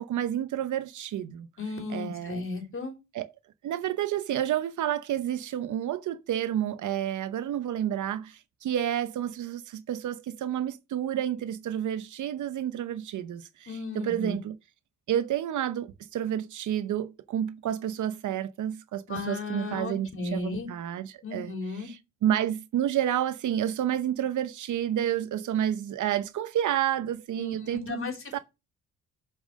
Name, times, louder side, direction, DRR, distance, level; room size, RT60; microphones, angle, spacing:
voice 1, 0.0-1.5 1.9-2.4 3.1-3.3 3.6-14.6 15.1-21.5 21.8-22.0 22.2-28.0 28.3-28.4, right 10 dB, 70° right, 0.8 m, -30 dB
voice 2, 1.6-2.9 13.7-14.4 19.1-20.7 21.2-21.9 27.4-28.4, left 3 dB, 40° left, 3.5 m, -35 dB
7.0 x 5.5 x 6.3 m
cardioid pair, 70°, 32 cm